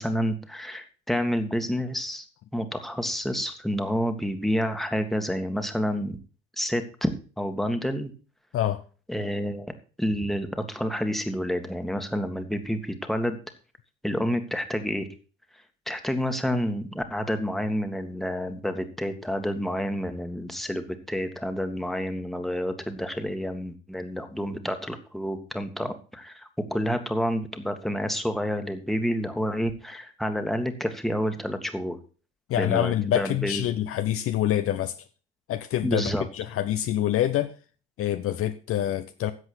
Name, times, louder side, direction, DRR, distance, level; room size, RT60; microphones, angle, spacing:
voice 1, 0.0-2.2 2.5-6.2 6.6-7.1 7.4-8.1 9.1-9.7 10.0-13.4 14.0-15.1 15.9-32.0 32.6-33.6 35.8-36.2, equal, ahead, 2.0 m, -29 dB
voice 2, 32.5-34.9 35.5-37.5 38.0-39.3, left 12 dB, 45° left, 1.0 m, -26 dB
14.0 x 7.9 x 4.5 m
figure-of-eight pair, 60°, 31 cm